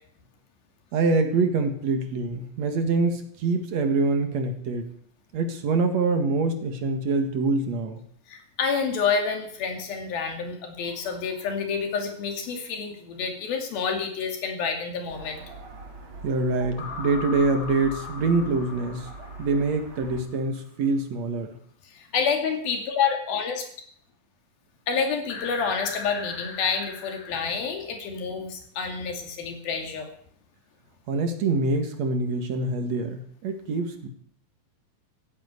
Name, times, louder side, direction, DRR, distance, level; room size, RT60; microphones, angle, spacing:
voice 1, 0.9-4.9 5.3-8.0 16.2-19.1 19.4-21.6 31.1-34.1, right 3 dB, 55° right, 6 dB, 2.7 m, -25 dB
voice 2, 8.3-15.4 21.9-23.7 24.9-30.1, left 6 dB, 85° left, 4 dB, 4.3 m, -28 dB
sound 1, 10.8-11.7 16.8-20.5 25.3-27.4, left 5 dB, 55° left, 3.2 m, -39 dB
sound 2, 15.1-20.2, right 3 dB, 35° right, 3.5 m, -43 dB
15.5 x 9.5 x 8.3 m, 0.63 s
omnidirectional pair, 4.1 m